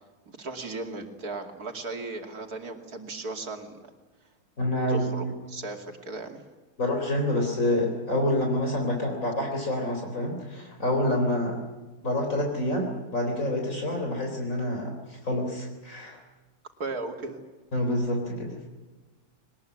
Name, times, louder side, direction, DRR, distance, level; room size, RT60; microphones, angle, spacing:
voice 1, 0.3-3.8 4.9-6.4 16.8-17.4, right 3 dB, 70° right, 4 dB, 3.0 m, -36 dB
voice 2, 4.6-5.3 6.8-11.6 12.0-16.2 17.7-18.6, left 1 dB, 55° left, 2 dB, 4.2 m, -27 dB
21.5 x 20.0 x 9.7 m, 1.2 s
omnidirectional pair, 1.7 m